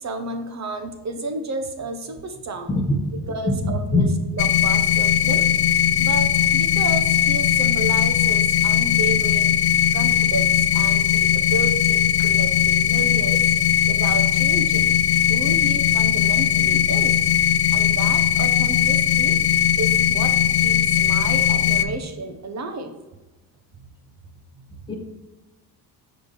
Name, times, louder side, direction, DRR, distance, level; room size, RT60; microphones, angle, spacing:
voice 1, 0.0-2.7 3.3-4.1 4.3-13.4 13.9-14.9 15.3-17.3 17.7-19.4 19.8-22.9 23.8-24.1 24.6-24.9, right 3 dB, 35° right, 6 dB, 1.1 m, -32 dB
voice 2, 2.7-4.1 24.9-25.0, left 2 dB, 10° left, 1 dB, 1.8 m, -23 dB
sound 1, 4.4-21.8, left 10 dB, 55° left, 0.6 m, -19 dB
6.8 x 5.2 x 4.5 m, 1.1 s
cardioid pair, 110°, 45 cm